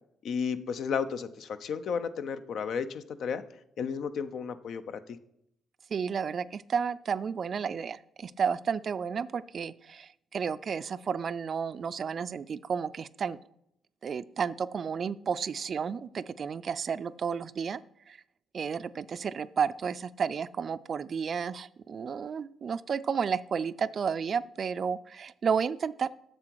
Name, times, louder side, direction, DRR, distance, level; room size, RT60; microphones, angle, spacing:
voice 1, 0.2-3.4 3.8-5.2, left 6 dB, 70° left, 12 dB, 0.5 m, -33 dB
voice 2, 5.9-13.4 14.0-17.8 18.1-18.2 18.5-26.1, right 6 dB, 50° right, 16 dB, 0.3 m, -32 dB
7.4 x 6.8 x 4.6 m, 0.77 s
cardioid pair, 90°, 0 cm